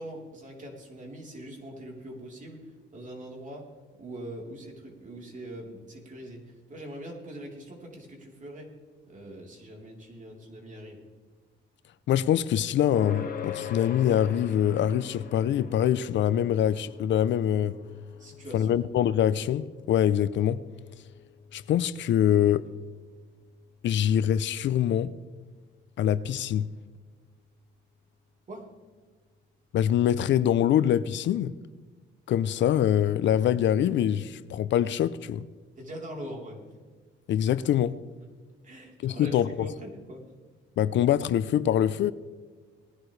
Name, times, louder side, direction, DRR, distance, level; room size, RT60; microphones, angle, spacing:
voice 1, 0.0-3.6 4.0-8.7 9.1-11.0 18.2-18.7 28.5-28.7 35.8-36.6 38.6-40.2, right 1 dB, 40° right, 3.7 m, -42 dB
voice 2, 12.1-17.8 18.5-20.6 21.5-22.7 23.8-25.1 26.0-26.7 29.7-31.5 32.3-35.5 37.3-38.0 39.0-39.7 40.8-42.1, left 10 dB, 65° left, 0.5 m, -24 dB
sound 1, 12.9-27.8, left 6 dB, 45° left, 1.6 m, -44 dB
19.5 x 11.0 x 3.2 m
cardioid pair, 90°, 20 cm